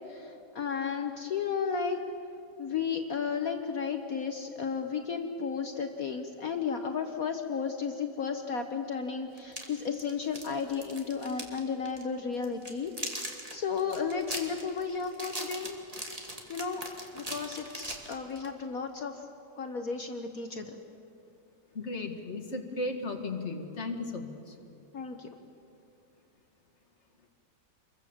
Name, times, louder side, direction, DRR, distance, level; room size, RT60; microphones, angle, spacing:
voice 1, 0.1-2.0 2.6-15.8 16.5-16.8 17.1-19.3 19.6-20.8 24.9-25.3, left 6 dB, 55° left, 5 dB, 1.5 m, -33 dB
sound 1, 9.4-11.6 11.9-12.0 12.4-18.5, right 1 dB, 20° right, 2.6 m, -40 dB
voice 2, 21.7-24.6, left 2 dB, 40° left, 4 dB, 2.3 m, -35 dB
27.5 x 23.0 x 7.3 m, 2.7 s
omnidirectional pair, 1.9 m